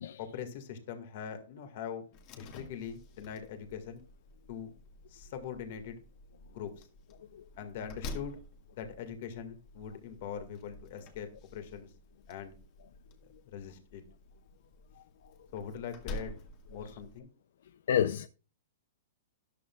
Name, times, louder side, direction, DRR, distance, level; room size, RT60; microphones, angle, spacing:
voice 1, 0.2-2.0 2.4-4.0 4.5-4.7 5.1-6.0 6.5-6.9 7.6-8.4 8.7-11.9 12.3-12.5 13.5-14.0 15.5-16.4 16.7-17.3, left 8 dB, 50° left, 1.9 m, -42 dB
Slam, 2.1-17.2, left 2 dB, 35° left, 1.8 m, -49 dB
voice 2, 17.9-18.3, left 9 dB, 65° left, 0.4 m, -28 dB
13.0 x 11.0 x 2.4 m
hypercardioid pair, 160°, 0 cm